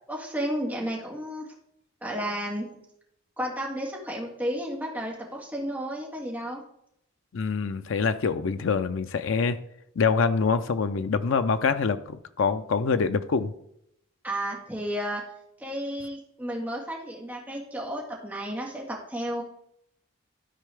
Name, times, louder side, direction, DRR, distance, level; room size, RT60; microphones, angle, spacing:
voice 1, 0.1-1.5 2.0-2.7 3.4-6.6 14.2-15.2 15.6-19.4, equal, 10° right, -3 dB, 1.7 m, -32 dB
voice 2, 7.3-9.6 10.0-13.5, left 5 dB, 75° left, 10 dB, 0.5 m, -25 dB
12.5 x 4.6 x 3.4 m, 0.75 s
head